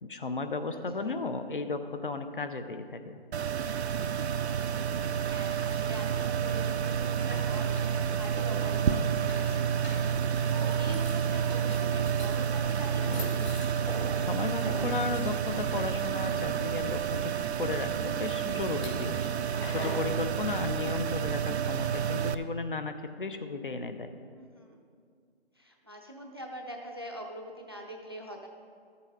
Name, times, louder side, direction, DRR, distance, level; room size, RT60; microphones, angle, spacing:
voice 1, 0.0-3.2 14.3-17.3 17.6-19.3 19.7-24.1, left 3 dB, 55° left, 8 dB, 0.7 m, -34 dB
voice 2, 0.7-1.1 5.0-7.8 8.2-9.9 10.5-13.3 24.3-24.8 25.5-28.5, equal, 25° right, 2 dB, 0.5 m, -44 dB
sound 1, 3.3-22.3, right 8 dB, 80° right, 0.5 m, -30 dB
sound 2, 6.9-20.1, left 2 dB, 80° left, 2.8 m, -43 dB
13.5 x 7.0 x 3.9 m, 2.2 s
figure-of-eight pair, 170°, 33 cm